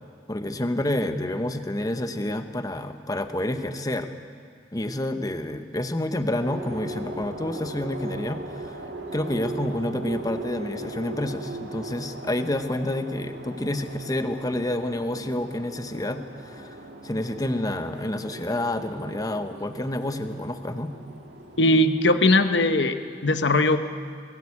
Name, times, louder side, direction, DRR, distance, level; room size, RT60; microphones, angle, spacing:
voice 1, 0.3-4.1 4.7-8.8 9.1-16.8 17.0-20.9, left 1 dB, 20° left, 8 dB, 1.0 m, -29 dB
sound 1, 6.4-22.7, right 1 dB, 75° right, 2.0 m, -39 dB
voice 2, 21.6-23.0 23.2-23.8, left 2 dB, 80° left, 9 dB, 1.0 m, -19 dB
21.0 x 17.0 x 8.5 m, 2.3 s
head